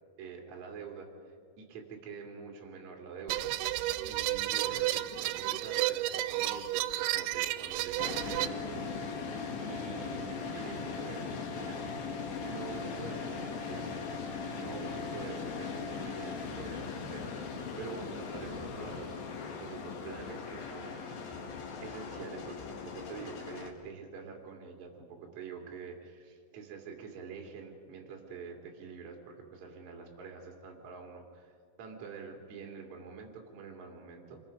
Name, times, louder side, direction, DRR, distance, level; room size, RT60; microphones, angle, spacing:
voice 1, 0.2-3.5 4.1-9.1 9.6-11.8 12.4-14.0 14.6-19.2 19.6-21.4 21.8-31.5 31.8-34.4, right 5 dB, 45° right, 2 dB, 3.4 m, -46 dB
sound 1, 3.3-8.5, right 15 dB, 85° right, 3.0 m, -32 dB
sound 2, 8.0-23.7, left 5 dB, 60° left, 3.2 m, -39 dB
26.5 x 21.5 x 5.3 m, 2.4 s
omnidirectional pair, 5.2 m